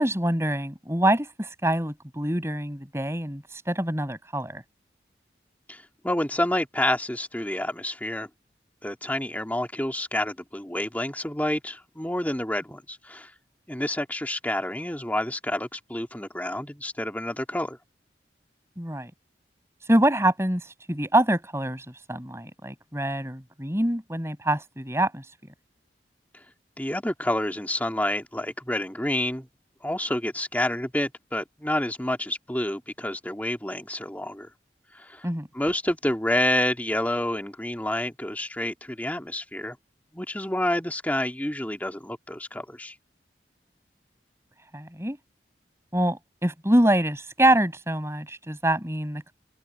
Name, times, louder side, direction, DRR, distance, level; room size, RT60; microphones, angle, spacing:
voice 1, 0.0-4.6 18.8-19.1 19.9-25.3 35.2-35.5 44.7-45.2 45.9-49.3, right 1 dB, 15° right, 7.6 m, -25 dB
voice 2, 5.7-8.3 8.8-13.3 13.7-17.8 26.8-29.5 29.8-34.5 34.9-35.3 35.5-39.8 40.1-42.9, left 1 dB, 10° left, 2.2 m, -28 dB
head